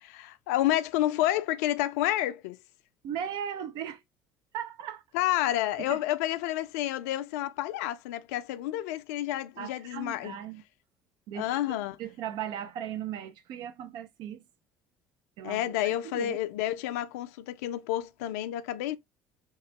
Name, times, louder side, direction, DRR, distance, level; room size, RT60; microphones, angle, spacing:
voice 1, 0.0-2.6 5.1-10.4 11.4-12.0 15.4-19.0, left 14 dB, 70° left, 0.4 m, -30 dB
voice 2, 3.0-4.0 4.5-5.0 5.8-6.0 9.6-10.6 11.3-14.4 15.4-16.4, right 9 dB, 60° right, 0.5 m, -38 dB
2.9 x 2.3 x 2.8 m
hypercardioid pair, 60°, 8 cm